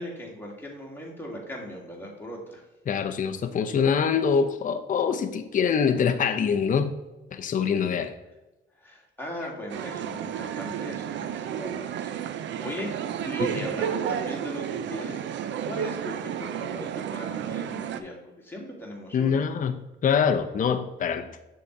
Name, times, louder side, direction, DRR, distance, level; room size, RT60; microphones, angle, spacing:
voice 1, 0.0-2.6 8.8-12.9 13.2-15.2 15.6-19.4, left 1 dB, 10° left, 2.0 m, -38 dB
voice 2, 2.9-6.9 7.3-8.1 19.1-21.3, left 6 dB, 40° left, 0.6 m, -24 dB
sound 1, 9.7-18.0, right 9 dB, 65° right, 0.5 m, -32 dB
6.7 x 3.8 x 4.5 m
cardioid pair, 90°, 20 cm